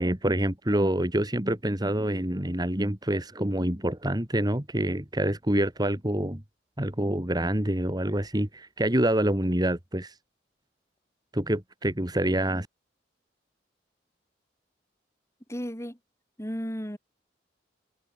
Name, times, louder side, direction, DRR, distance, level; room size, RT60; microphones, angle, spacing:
voice 1, 0.0-6.4 6.8-10.1 11.3-12.7, right 1 dB, 20° right, 2.3 m, -26 dB
voice 2, 15.5-16.0 16.4-17.0, equal, 15° left, 5.6 m, -34 dB
head